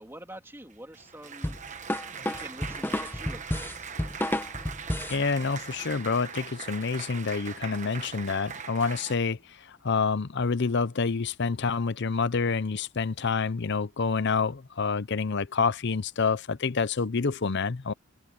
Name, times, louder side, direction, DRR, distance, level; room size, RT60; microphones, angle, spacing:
voice 1, 0.0-1.6 2.2-4.0, right 1 dB, 10° right, 3.2 m, -46 dB
Applause, 0.7-9.2, right 6 dB, 35° right, 1.1 m, -41 dB
sound 1, 1.4-5.2, left 1 dB, 10° left, 0.8 m, -31 dB
voice 2, 5.1-9.4 9.8-17.9, left 5 dB, 50° left, 0.6 m, -27 dB
head